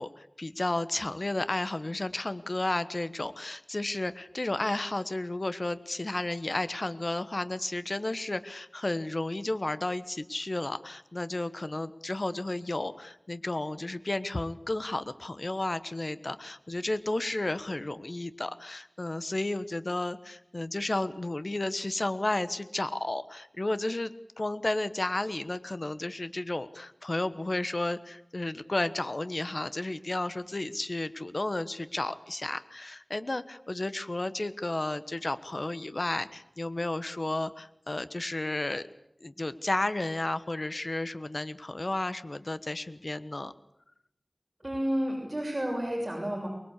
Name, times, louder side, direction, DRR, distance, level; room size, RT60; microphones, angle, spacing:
voice 1, 0.0-24.1 24.4-38.8 39.2-43.5, left 2 dB, 60° left, 13 dB, 1.2 m, -32 dB
voice 2, 44.6-46.5, equal, 30° right, 0 dB, 6.8 m, -31 dB
24.0 x 20.5 x 8.4 m, 0.78 s
wide cardioid pair, 45°, 0 cm